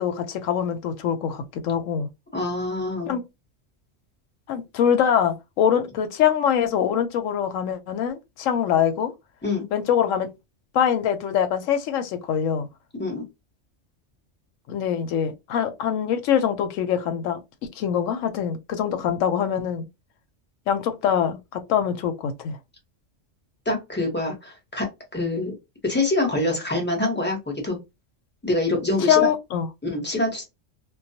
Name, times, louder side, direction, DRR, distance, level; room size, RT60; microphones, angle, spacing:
voice 1, 0.0-2.1 3.1-3.2 4.5-9.1 9.7-10.3 10.7-12.7 14.7-17.4 17.8-19.8 20.7-22.6 29.1-29.7, left 8 dB, 90° left, 0.9 m, -23 dB
voice 2, 2.3-3.2 9.4-9.6 13.0-13.2 23.7-24.9 25.1-25.5 25.8-27.8 28.4-29.3 29.8-30.4, left 2 dB, 10° left, 0.6 m, -25 dB
2.3 x 2.1 x 2.6 m
omnidirectional pair, 1.3 m